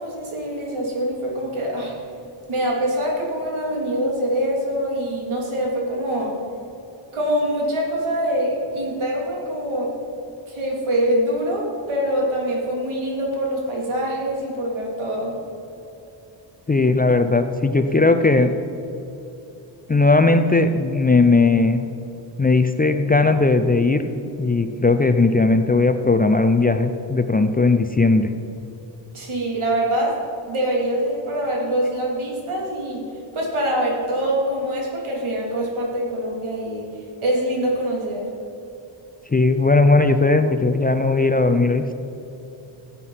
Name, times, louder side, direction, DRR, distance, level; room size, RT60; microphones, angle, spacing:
voice 1, 0.0-1.9 2.5-6.3 7.1-9.9 10.5-15.3 29.1-33.0 33.3-36.9 37.2-38.3, right 1 dB, 80° right, -2 dB, 3.3 m, -24 dB
voice 2, 16.7-18.5 19.9-21.8 22.4-24.0 24.4-28.3 39.3-41.8, left 3 dB, 20° left, 8 dB, 0.4 m, -17 dB
15.5 x 8.3 x 5.8 m, 3.0 s
wide cardioid pair, 160°, 48 cm